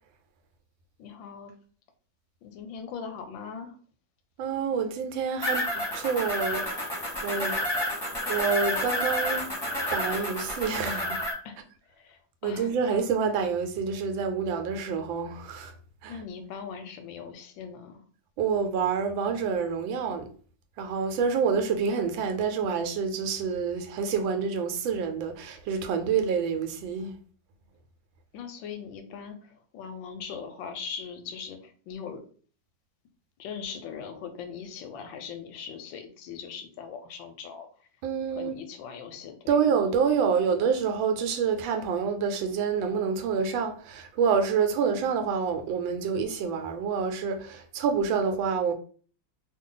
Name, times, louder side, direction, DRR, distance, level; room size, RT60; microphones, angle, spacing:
voice 1, 1.0-1.5 2.4-3.8 11.4-11.6 12.0-13.0 16.1-18.0 28.3-32.2 33.4-37.7 38.3-39.6, left 6 dB, 90° left, 1.4 m, -40 dB
voice 2, 4.4-6.6 7.2-7.5 8.3-9.4 9.9-11.2 12.4-15.7 16.0-16.2 18.4-20.3 20.8-27.2 38.0-38.5 39.5-48.7, right 6 dB, 90° right, 1.4 m, -27 dB
sound 1, 5.4-11.3, left 1 dB, 20° left, 0.7 m, -30 dB
3.2 x 2.3 x 3.7 m
omnidirectional pair, 2.0 m